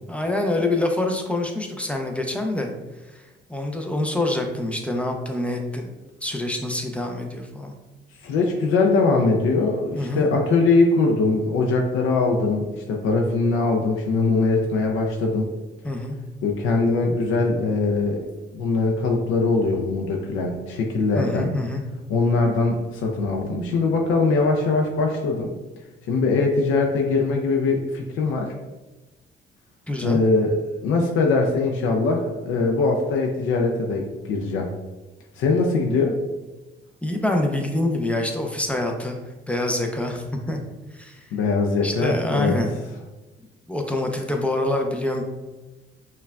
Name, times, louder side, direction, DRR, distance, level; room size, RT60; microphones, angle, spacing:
voice 1, 0.1-2.7 3.1-3.2 3.5-5.9 6.2-7.7 9.9-10.3 15.8-16.2 21.1-21.8 29.9-30.2 37.0-39.2 39.5-40.6 40.9-41.2 41.8-42.8 43.7-45.2, left 1 dB, 5° left, 2 dB, 0.5 m, -26 dB
voice 2, 8.2-15.5 16.4-18.3 18.5-21.5 22.1-25.5 26.1-28.5 30.0-34.7 35.4-36.2 41.3-42.6, left 3 dB, 85° left, 1 dB, 0.5 m, -21 dB
5.5 x 2.3 x 2.2 m, 1.1 s
cardioid pair, 90°, 20 cm